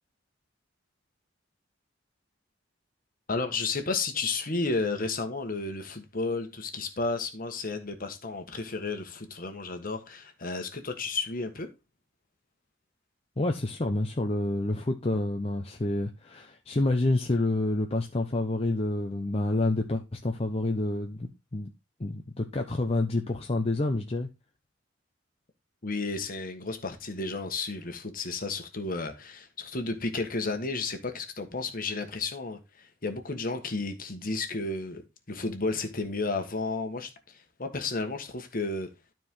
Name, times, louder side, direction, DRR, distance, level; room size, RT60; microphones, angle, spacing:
voice 1, 3.3-11.7 25.8-38.9, left 3 dB, 45° left, 1.5 m, -32 dB
voice 2, 13.4-21.7 22.0-24.3, left 2 dB, 30° left, 0.8 m, -28 dB
12.5 x 4.5 x 3.7 m
head